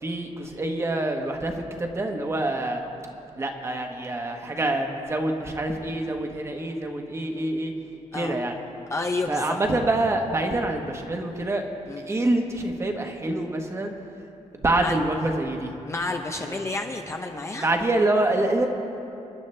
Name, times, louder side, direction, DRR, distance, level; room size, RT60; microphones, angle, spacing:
voice 1, 0.0-2.8 3.4-7.7 8.1-8.5 9.3-11.6 12.1-13.9 14.5-15.7 16.4-16.6 17.6-18.7, right 2 dB, 20° right, 3 dB, 1.1 m, -26 dB
voice 2, 8.9-9.6 11.9-12.0 14.8-15.0 15.8-17.7, left 3 dB, 20° left, 3 dB, 0.6 m, -30 dB
27.5 x 11.0 x 3.3 m, 2.8 s
wide cardioid pair, 180°, 13 cm